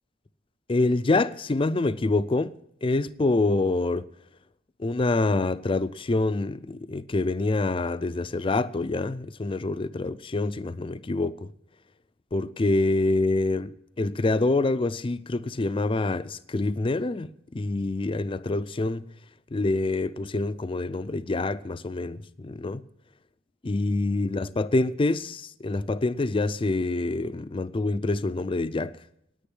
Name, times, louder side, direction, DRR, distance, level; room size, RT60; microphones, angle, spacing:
voice 1, 0.7-4.1 4.8-11.5 12.3-19.1 19.5-22.8 23.6-29.0, left 2 dB, 25° left, 0.4 m, -26 dB
10.0 x 9.3 x 9.9 m
head